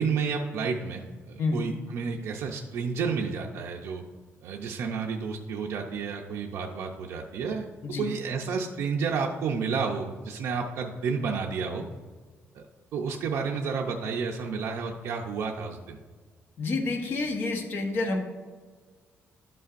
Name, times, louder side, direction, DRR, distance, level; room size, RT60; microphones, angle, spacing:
voice 1, 0.0-4.0 4.4-7.7 8.0-11.9 12.5-12.6 12.9-16.0, right 5 dB, 65° right, 0 dB, 0.5 m, -31 dB
voice 2, 16.6-18.2, left 3 dB, 50° left, 2 dB, 0.9 m, -28 dB
11.5 x 5.5 x 2.5 m, 1.5 s
cardioid pair, 175°, 5 cm